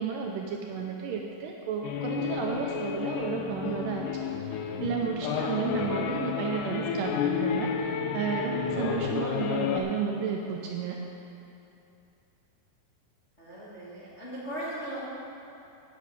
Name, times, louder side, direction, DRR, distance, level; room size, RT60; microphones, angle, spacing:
voice 1, 0.0-4.1 4.4-11.0, right 6 dB, 80° right, 1 dB, 1.9 m, -32 dB
sound 1, 1.8-9.8, left 6 dB, 90° left, 1.8 m, -31 dB
voice 2, 13.4-15.0, right 1 dB, 55° left, -9 dB, 0.7 m, -38 dB
9.4 x 6.1 x 8.3 m, 2.8 s
omnidirectional pair, 4.5 m